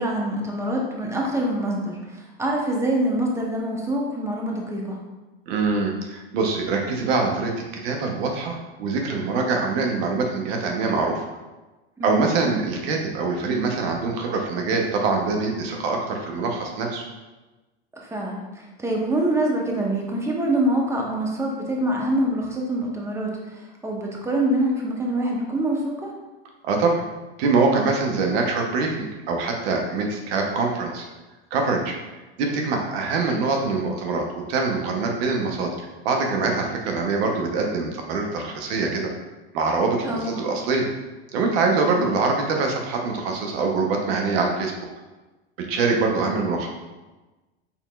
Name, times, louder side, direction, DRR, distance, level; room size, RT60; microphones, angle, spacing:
voice 1, 0.0-5.0 12.0-12.2 17.9-26.1 40.0-40.3 41.8-42.1, right 1 dB, 10° right, -1 dB, 0.8 m, -25 dB
voice 2, 5.5-7.5 7.8-11.2 12.0-17.0 26.6-27.0 27.4-31.0 31.5-31.9 32.4-35.7 36.0-39.1 39.5-40.9 41.3-44.7 45.6-46.7, right 4 dB, 65° right, 2 dB, 0.9 m, -24 dB
4.5 x 3.6 x 2.3 m, 1.1 s
hypercardioid pair, 100°, 33 cm